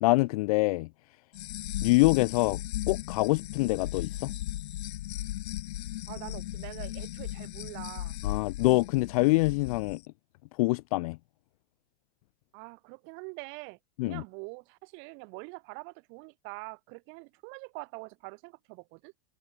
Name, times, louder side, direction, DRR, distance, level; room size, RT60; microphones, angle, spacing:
voice 1, 0.0-0.9 1.8-2.6 2.9-4.3 8.2-10.0 10.6-11.2 14.0-14.2, left 22 dB, 35° left, 0.4 m, -25 dB
sound 1, 1.3-10.0, left 14 dB, 85° left, 1.2 m, -36 dB
voice 2, 6.1-8.2 12.5-13.8 14.1-19.1, right 32 dB, 35° right, 3.4 m, -44 dB
supercardioid pair, 165°, 32 cm